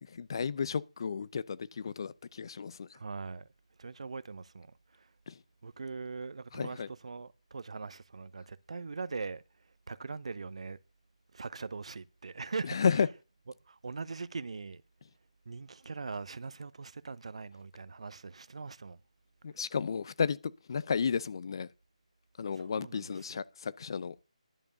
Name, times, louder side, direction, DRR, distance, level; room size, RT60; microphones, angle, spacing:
voice 1, 0.0-2.9 5.3-5.4 6.5-6.9 12.6-13.1 19.4-20.4 20.7-21.7 22.4-24.2, left 6 dB, 40° left, 0.5 m, -32 dB
voice 2, 2.9-3.5 3.8-4.7 4.9-5.1 5.6-9.4 9.9-10.8 11.3-12.8 13.7-14.8 15.5-19.0 22.6-23.4, right 4 dB, 60° right, 0.8 m, -41 dB
11.0 x 6.9 x 6.6 m
figure-of-eight pair, 160°, 4 cm